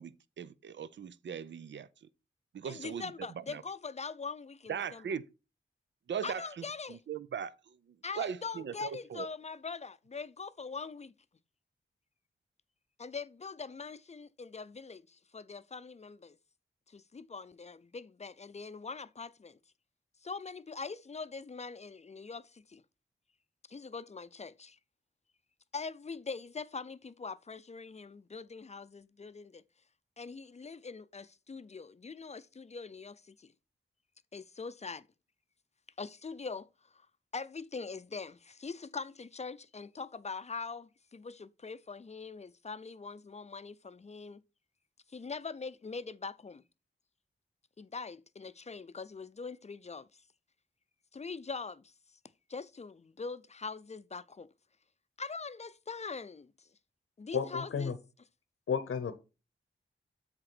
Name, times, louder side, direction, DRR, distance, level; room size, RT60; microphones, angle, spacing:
voice 1, 0.0-2.1 2.5-3.6 4.7-5.3 6.1-9.3, right 7 dB, 65° right, 0.5 m, -40 dB
voice 2, 2.6-5.1 6.2-7.0 8.0-11.1 13.0-16.4 16.9-19.6 20.2-22.8 23.7-24.8 25.7-29.6 30.2-33.5 34.3-35.1 36.0-37.1 37.3-44.4 45.1-46.6 47.8-50.2 51.1-51.9 52.5-54.5 55.2-56.7 57.2-57.9, left 4 dB, 35° left, 0.5 m, -43 dB
voice 3, 57.3-57.9 58.7-59.1, left 6 dB, 85° left, 0.9 m, -32 dB
7.8 x 3.7 x 6.0 m
wide cardioid pair, 80°, 21 cm